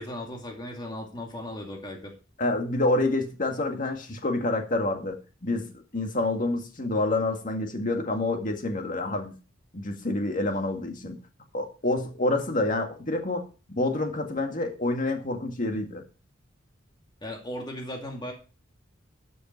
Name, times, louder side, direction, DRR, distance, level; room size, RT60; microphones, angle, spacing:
voice 1, 0.0-2.1 17.2-18.3, left 1 dB, 20° left, 0 dB, 2.5 m, -37 dB
voice 2, 2.4-9.3 9.7-11.2 11.5-13.4 13.8-16.0, left 2 dB, 40° left, 4 dB, 2.0 m, -28 dB
12.5 x 7.0 x 4.5 m, 0.34 s
head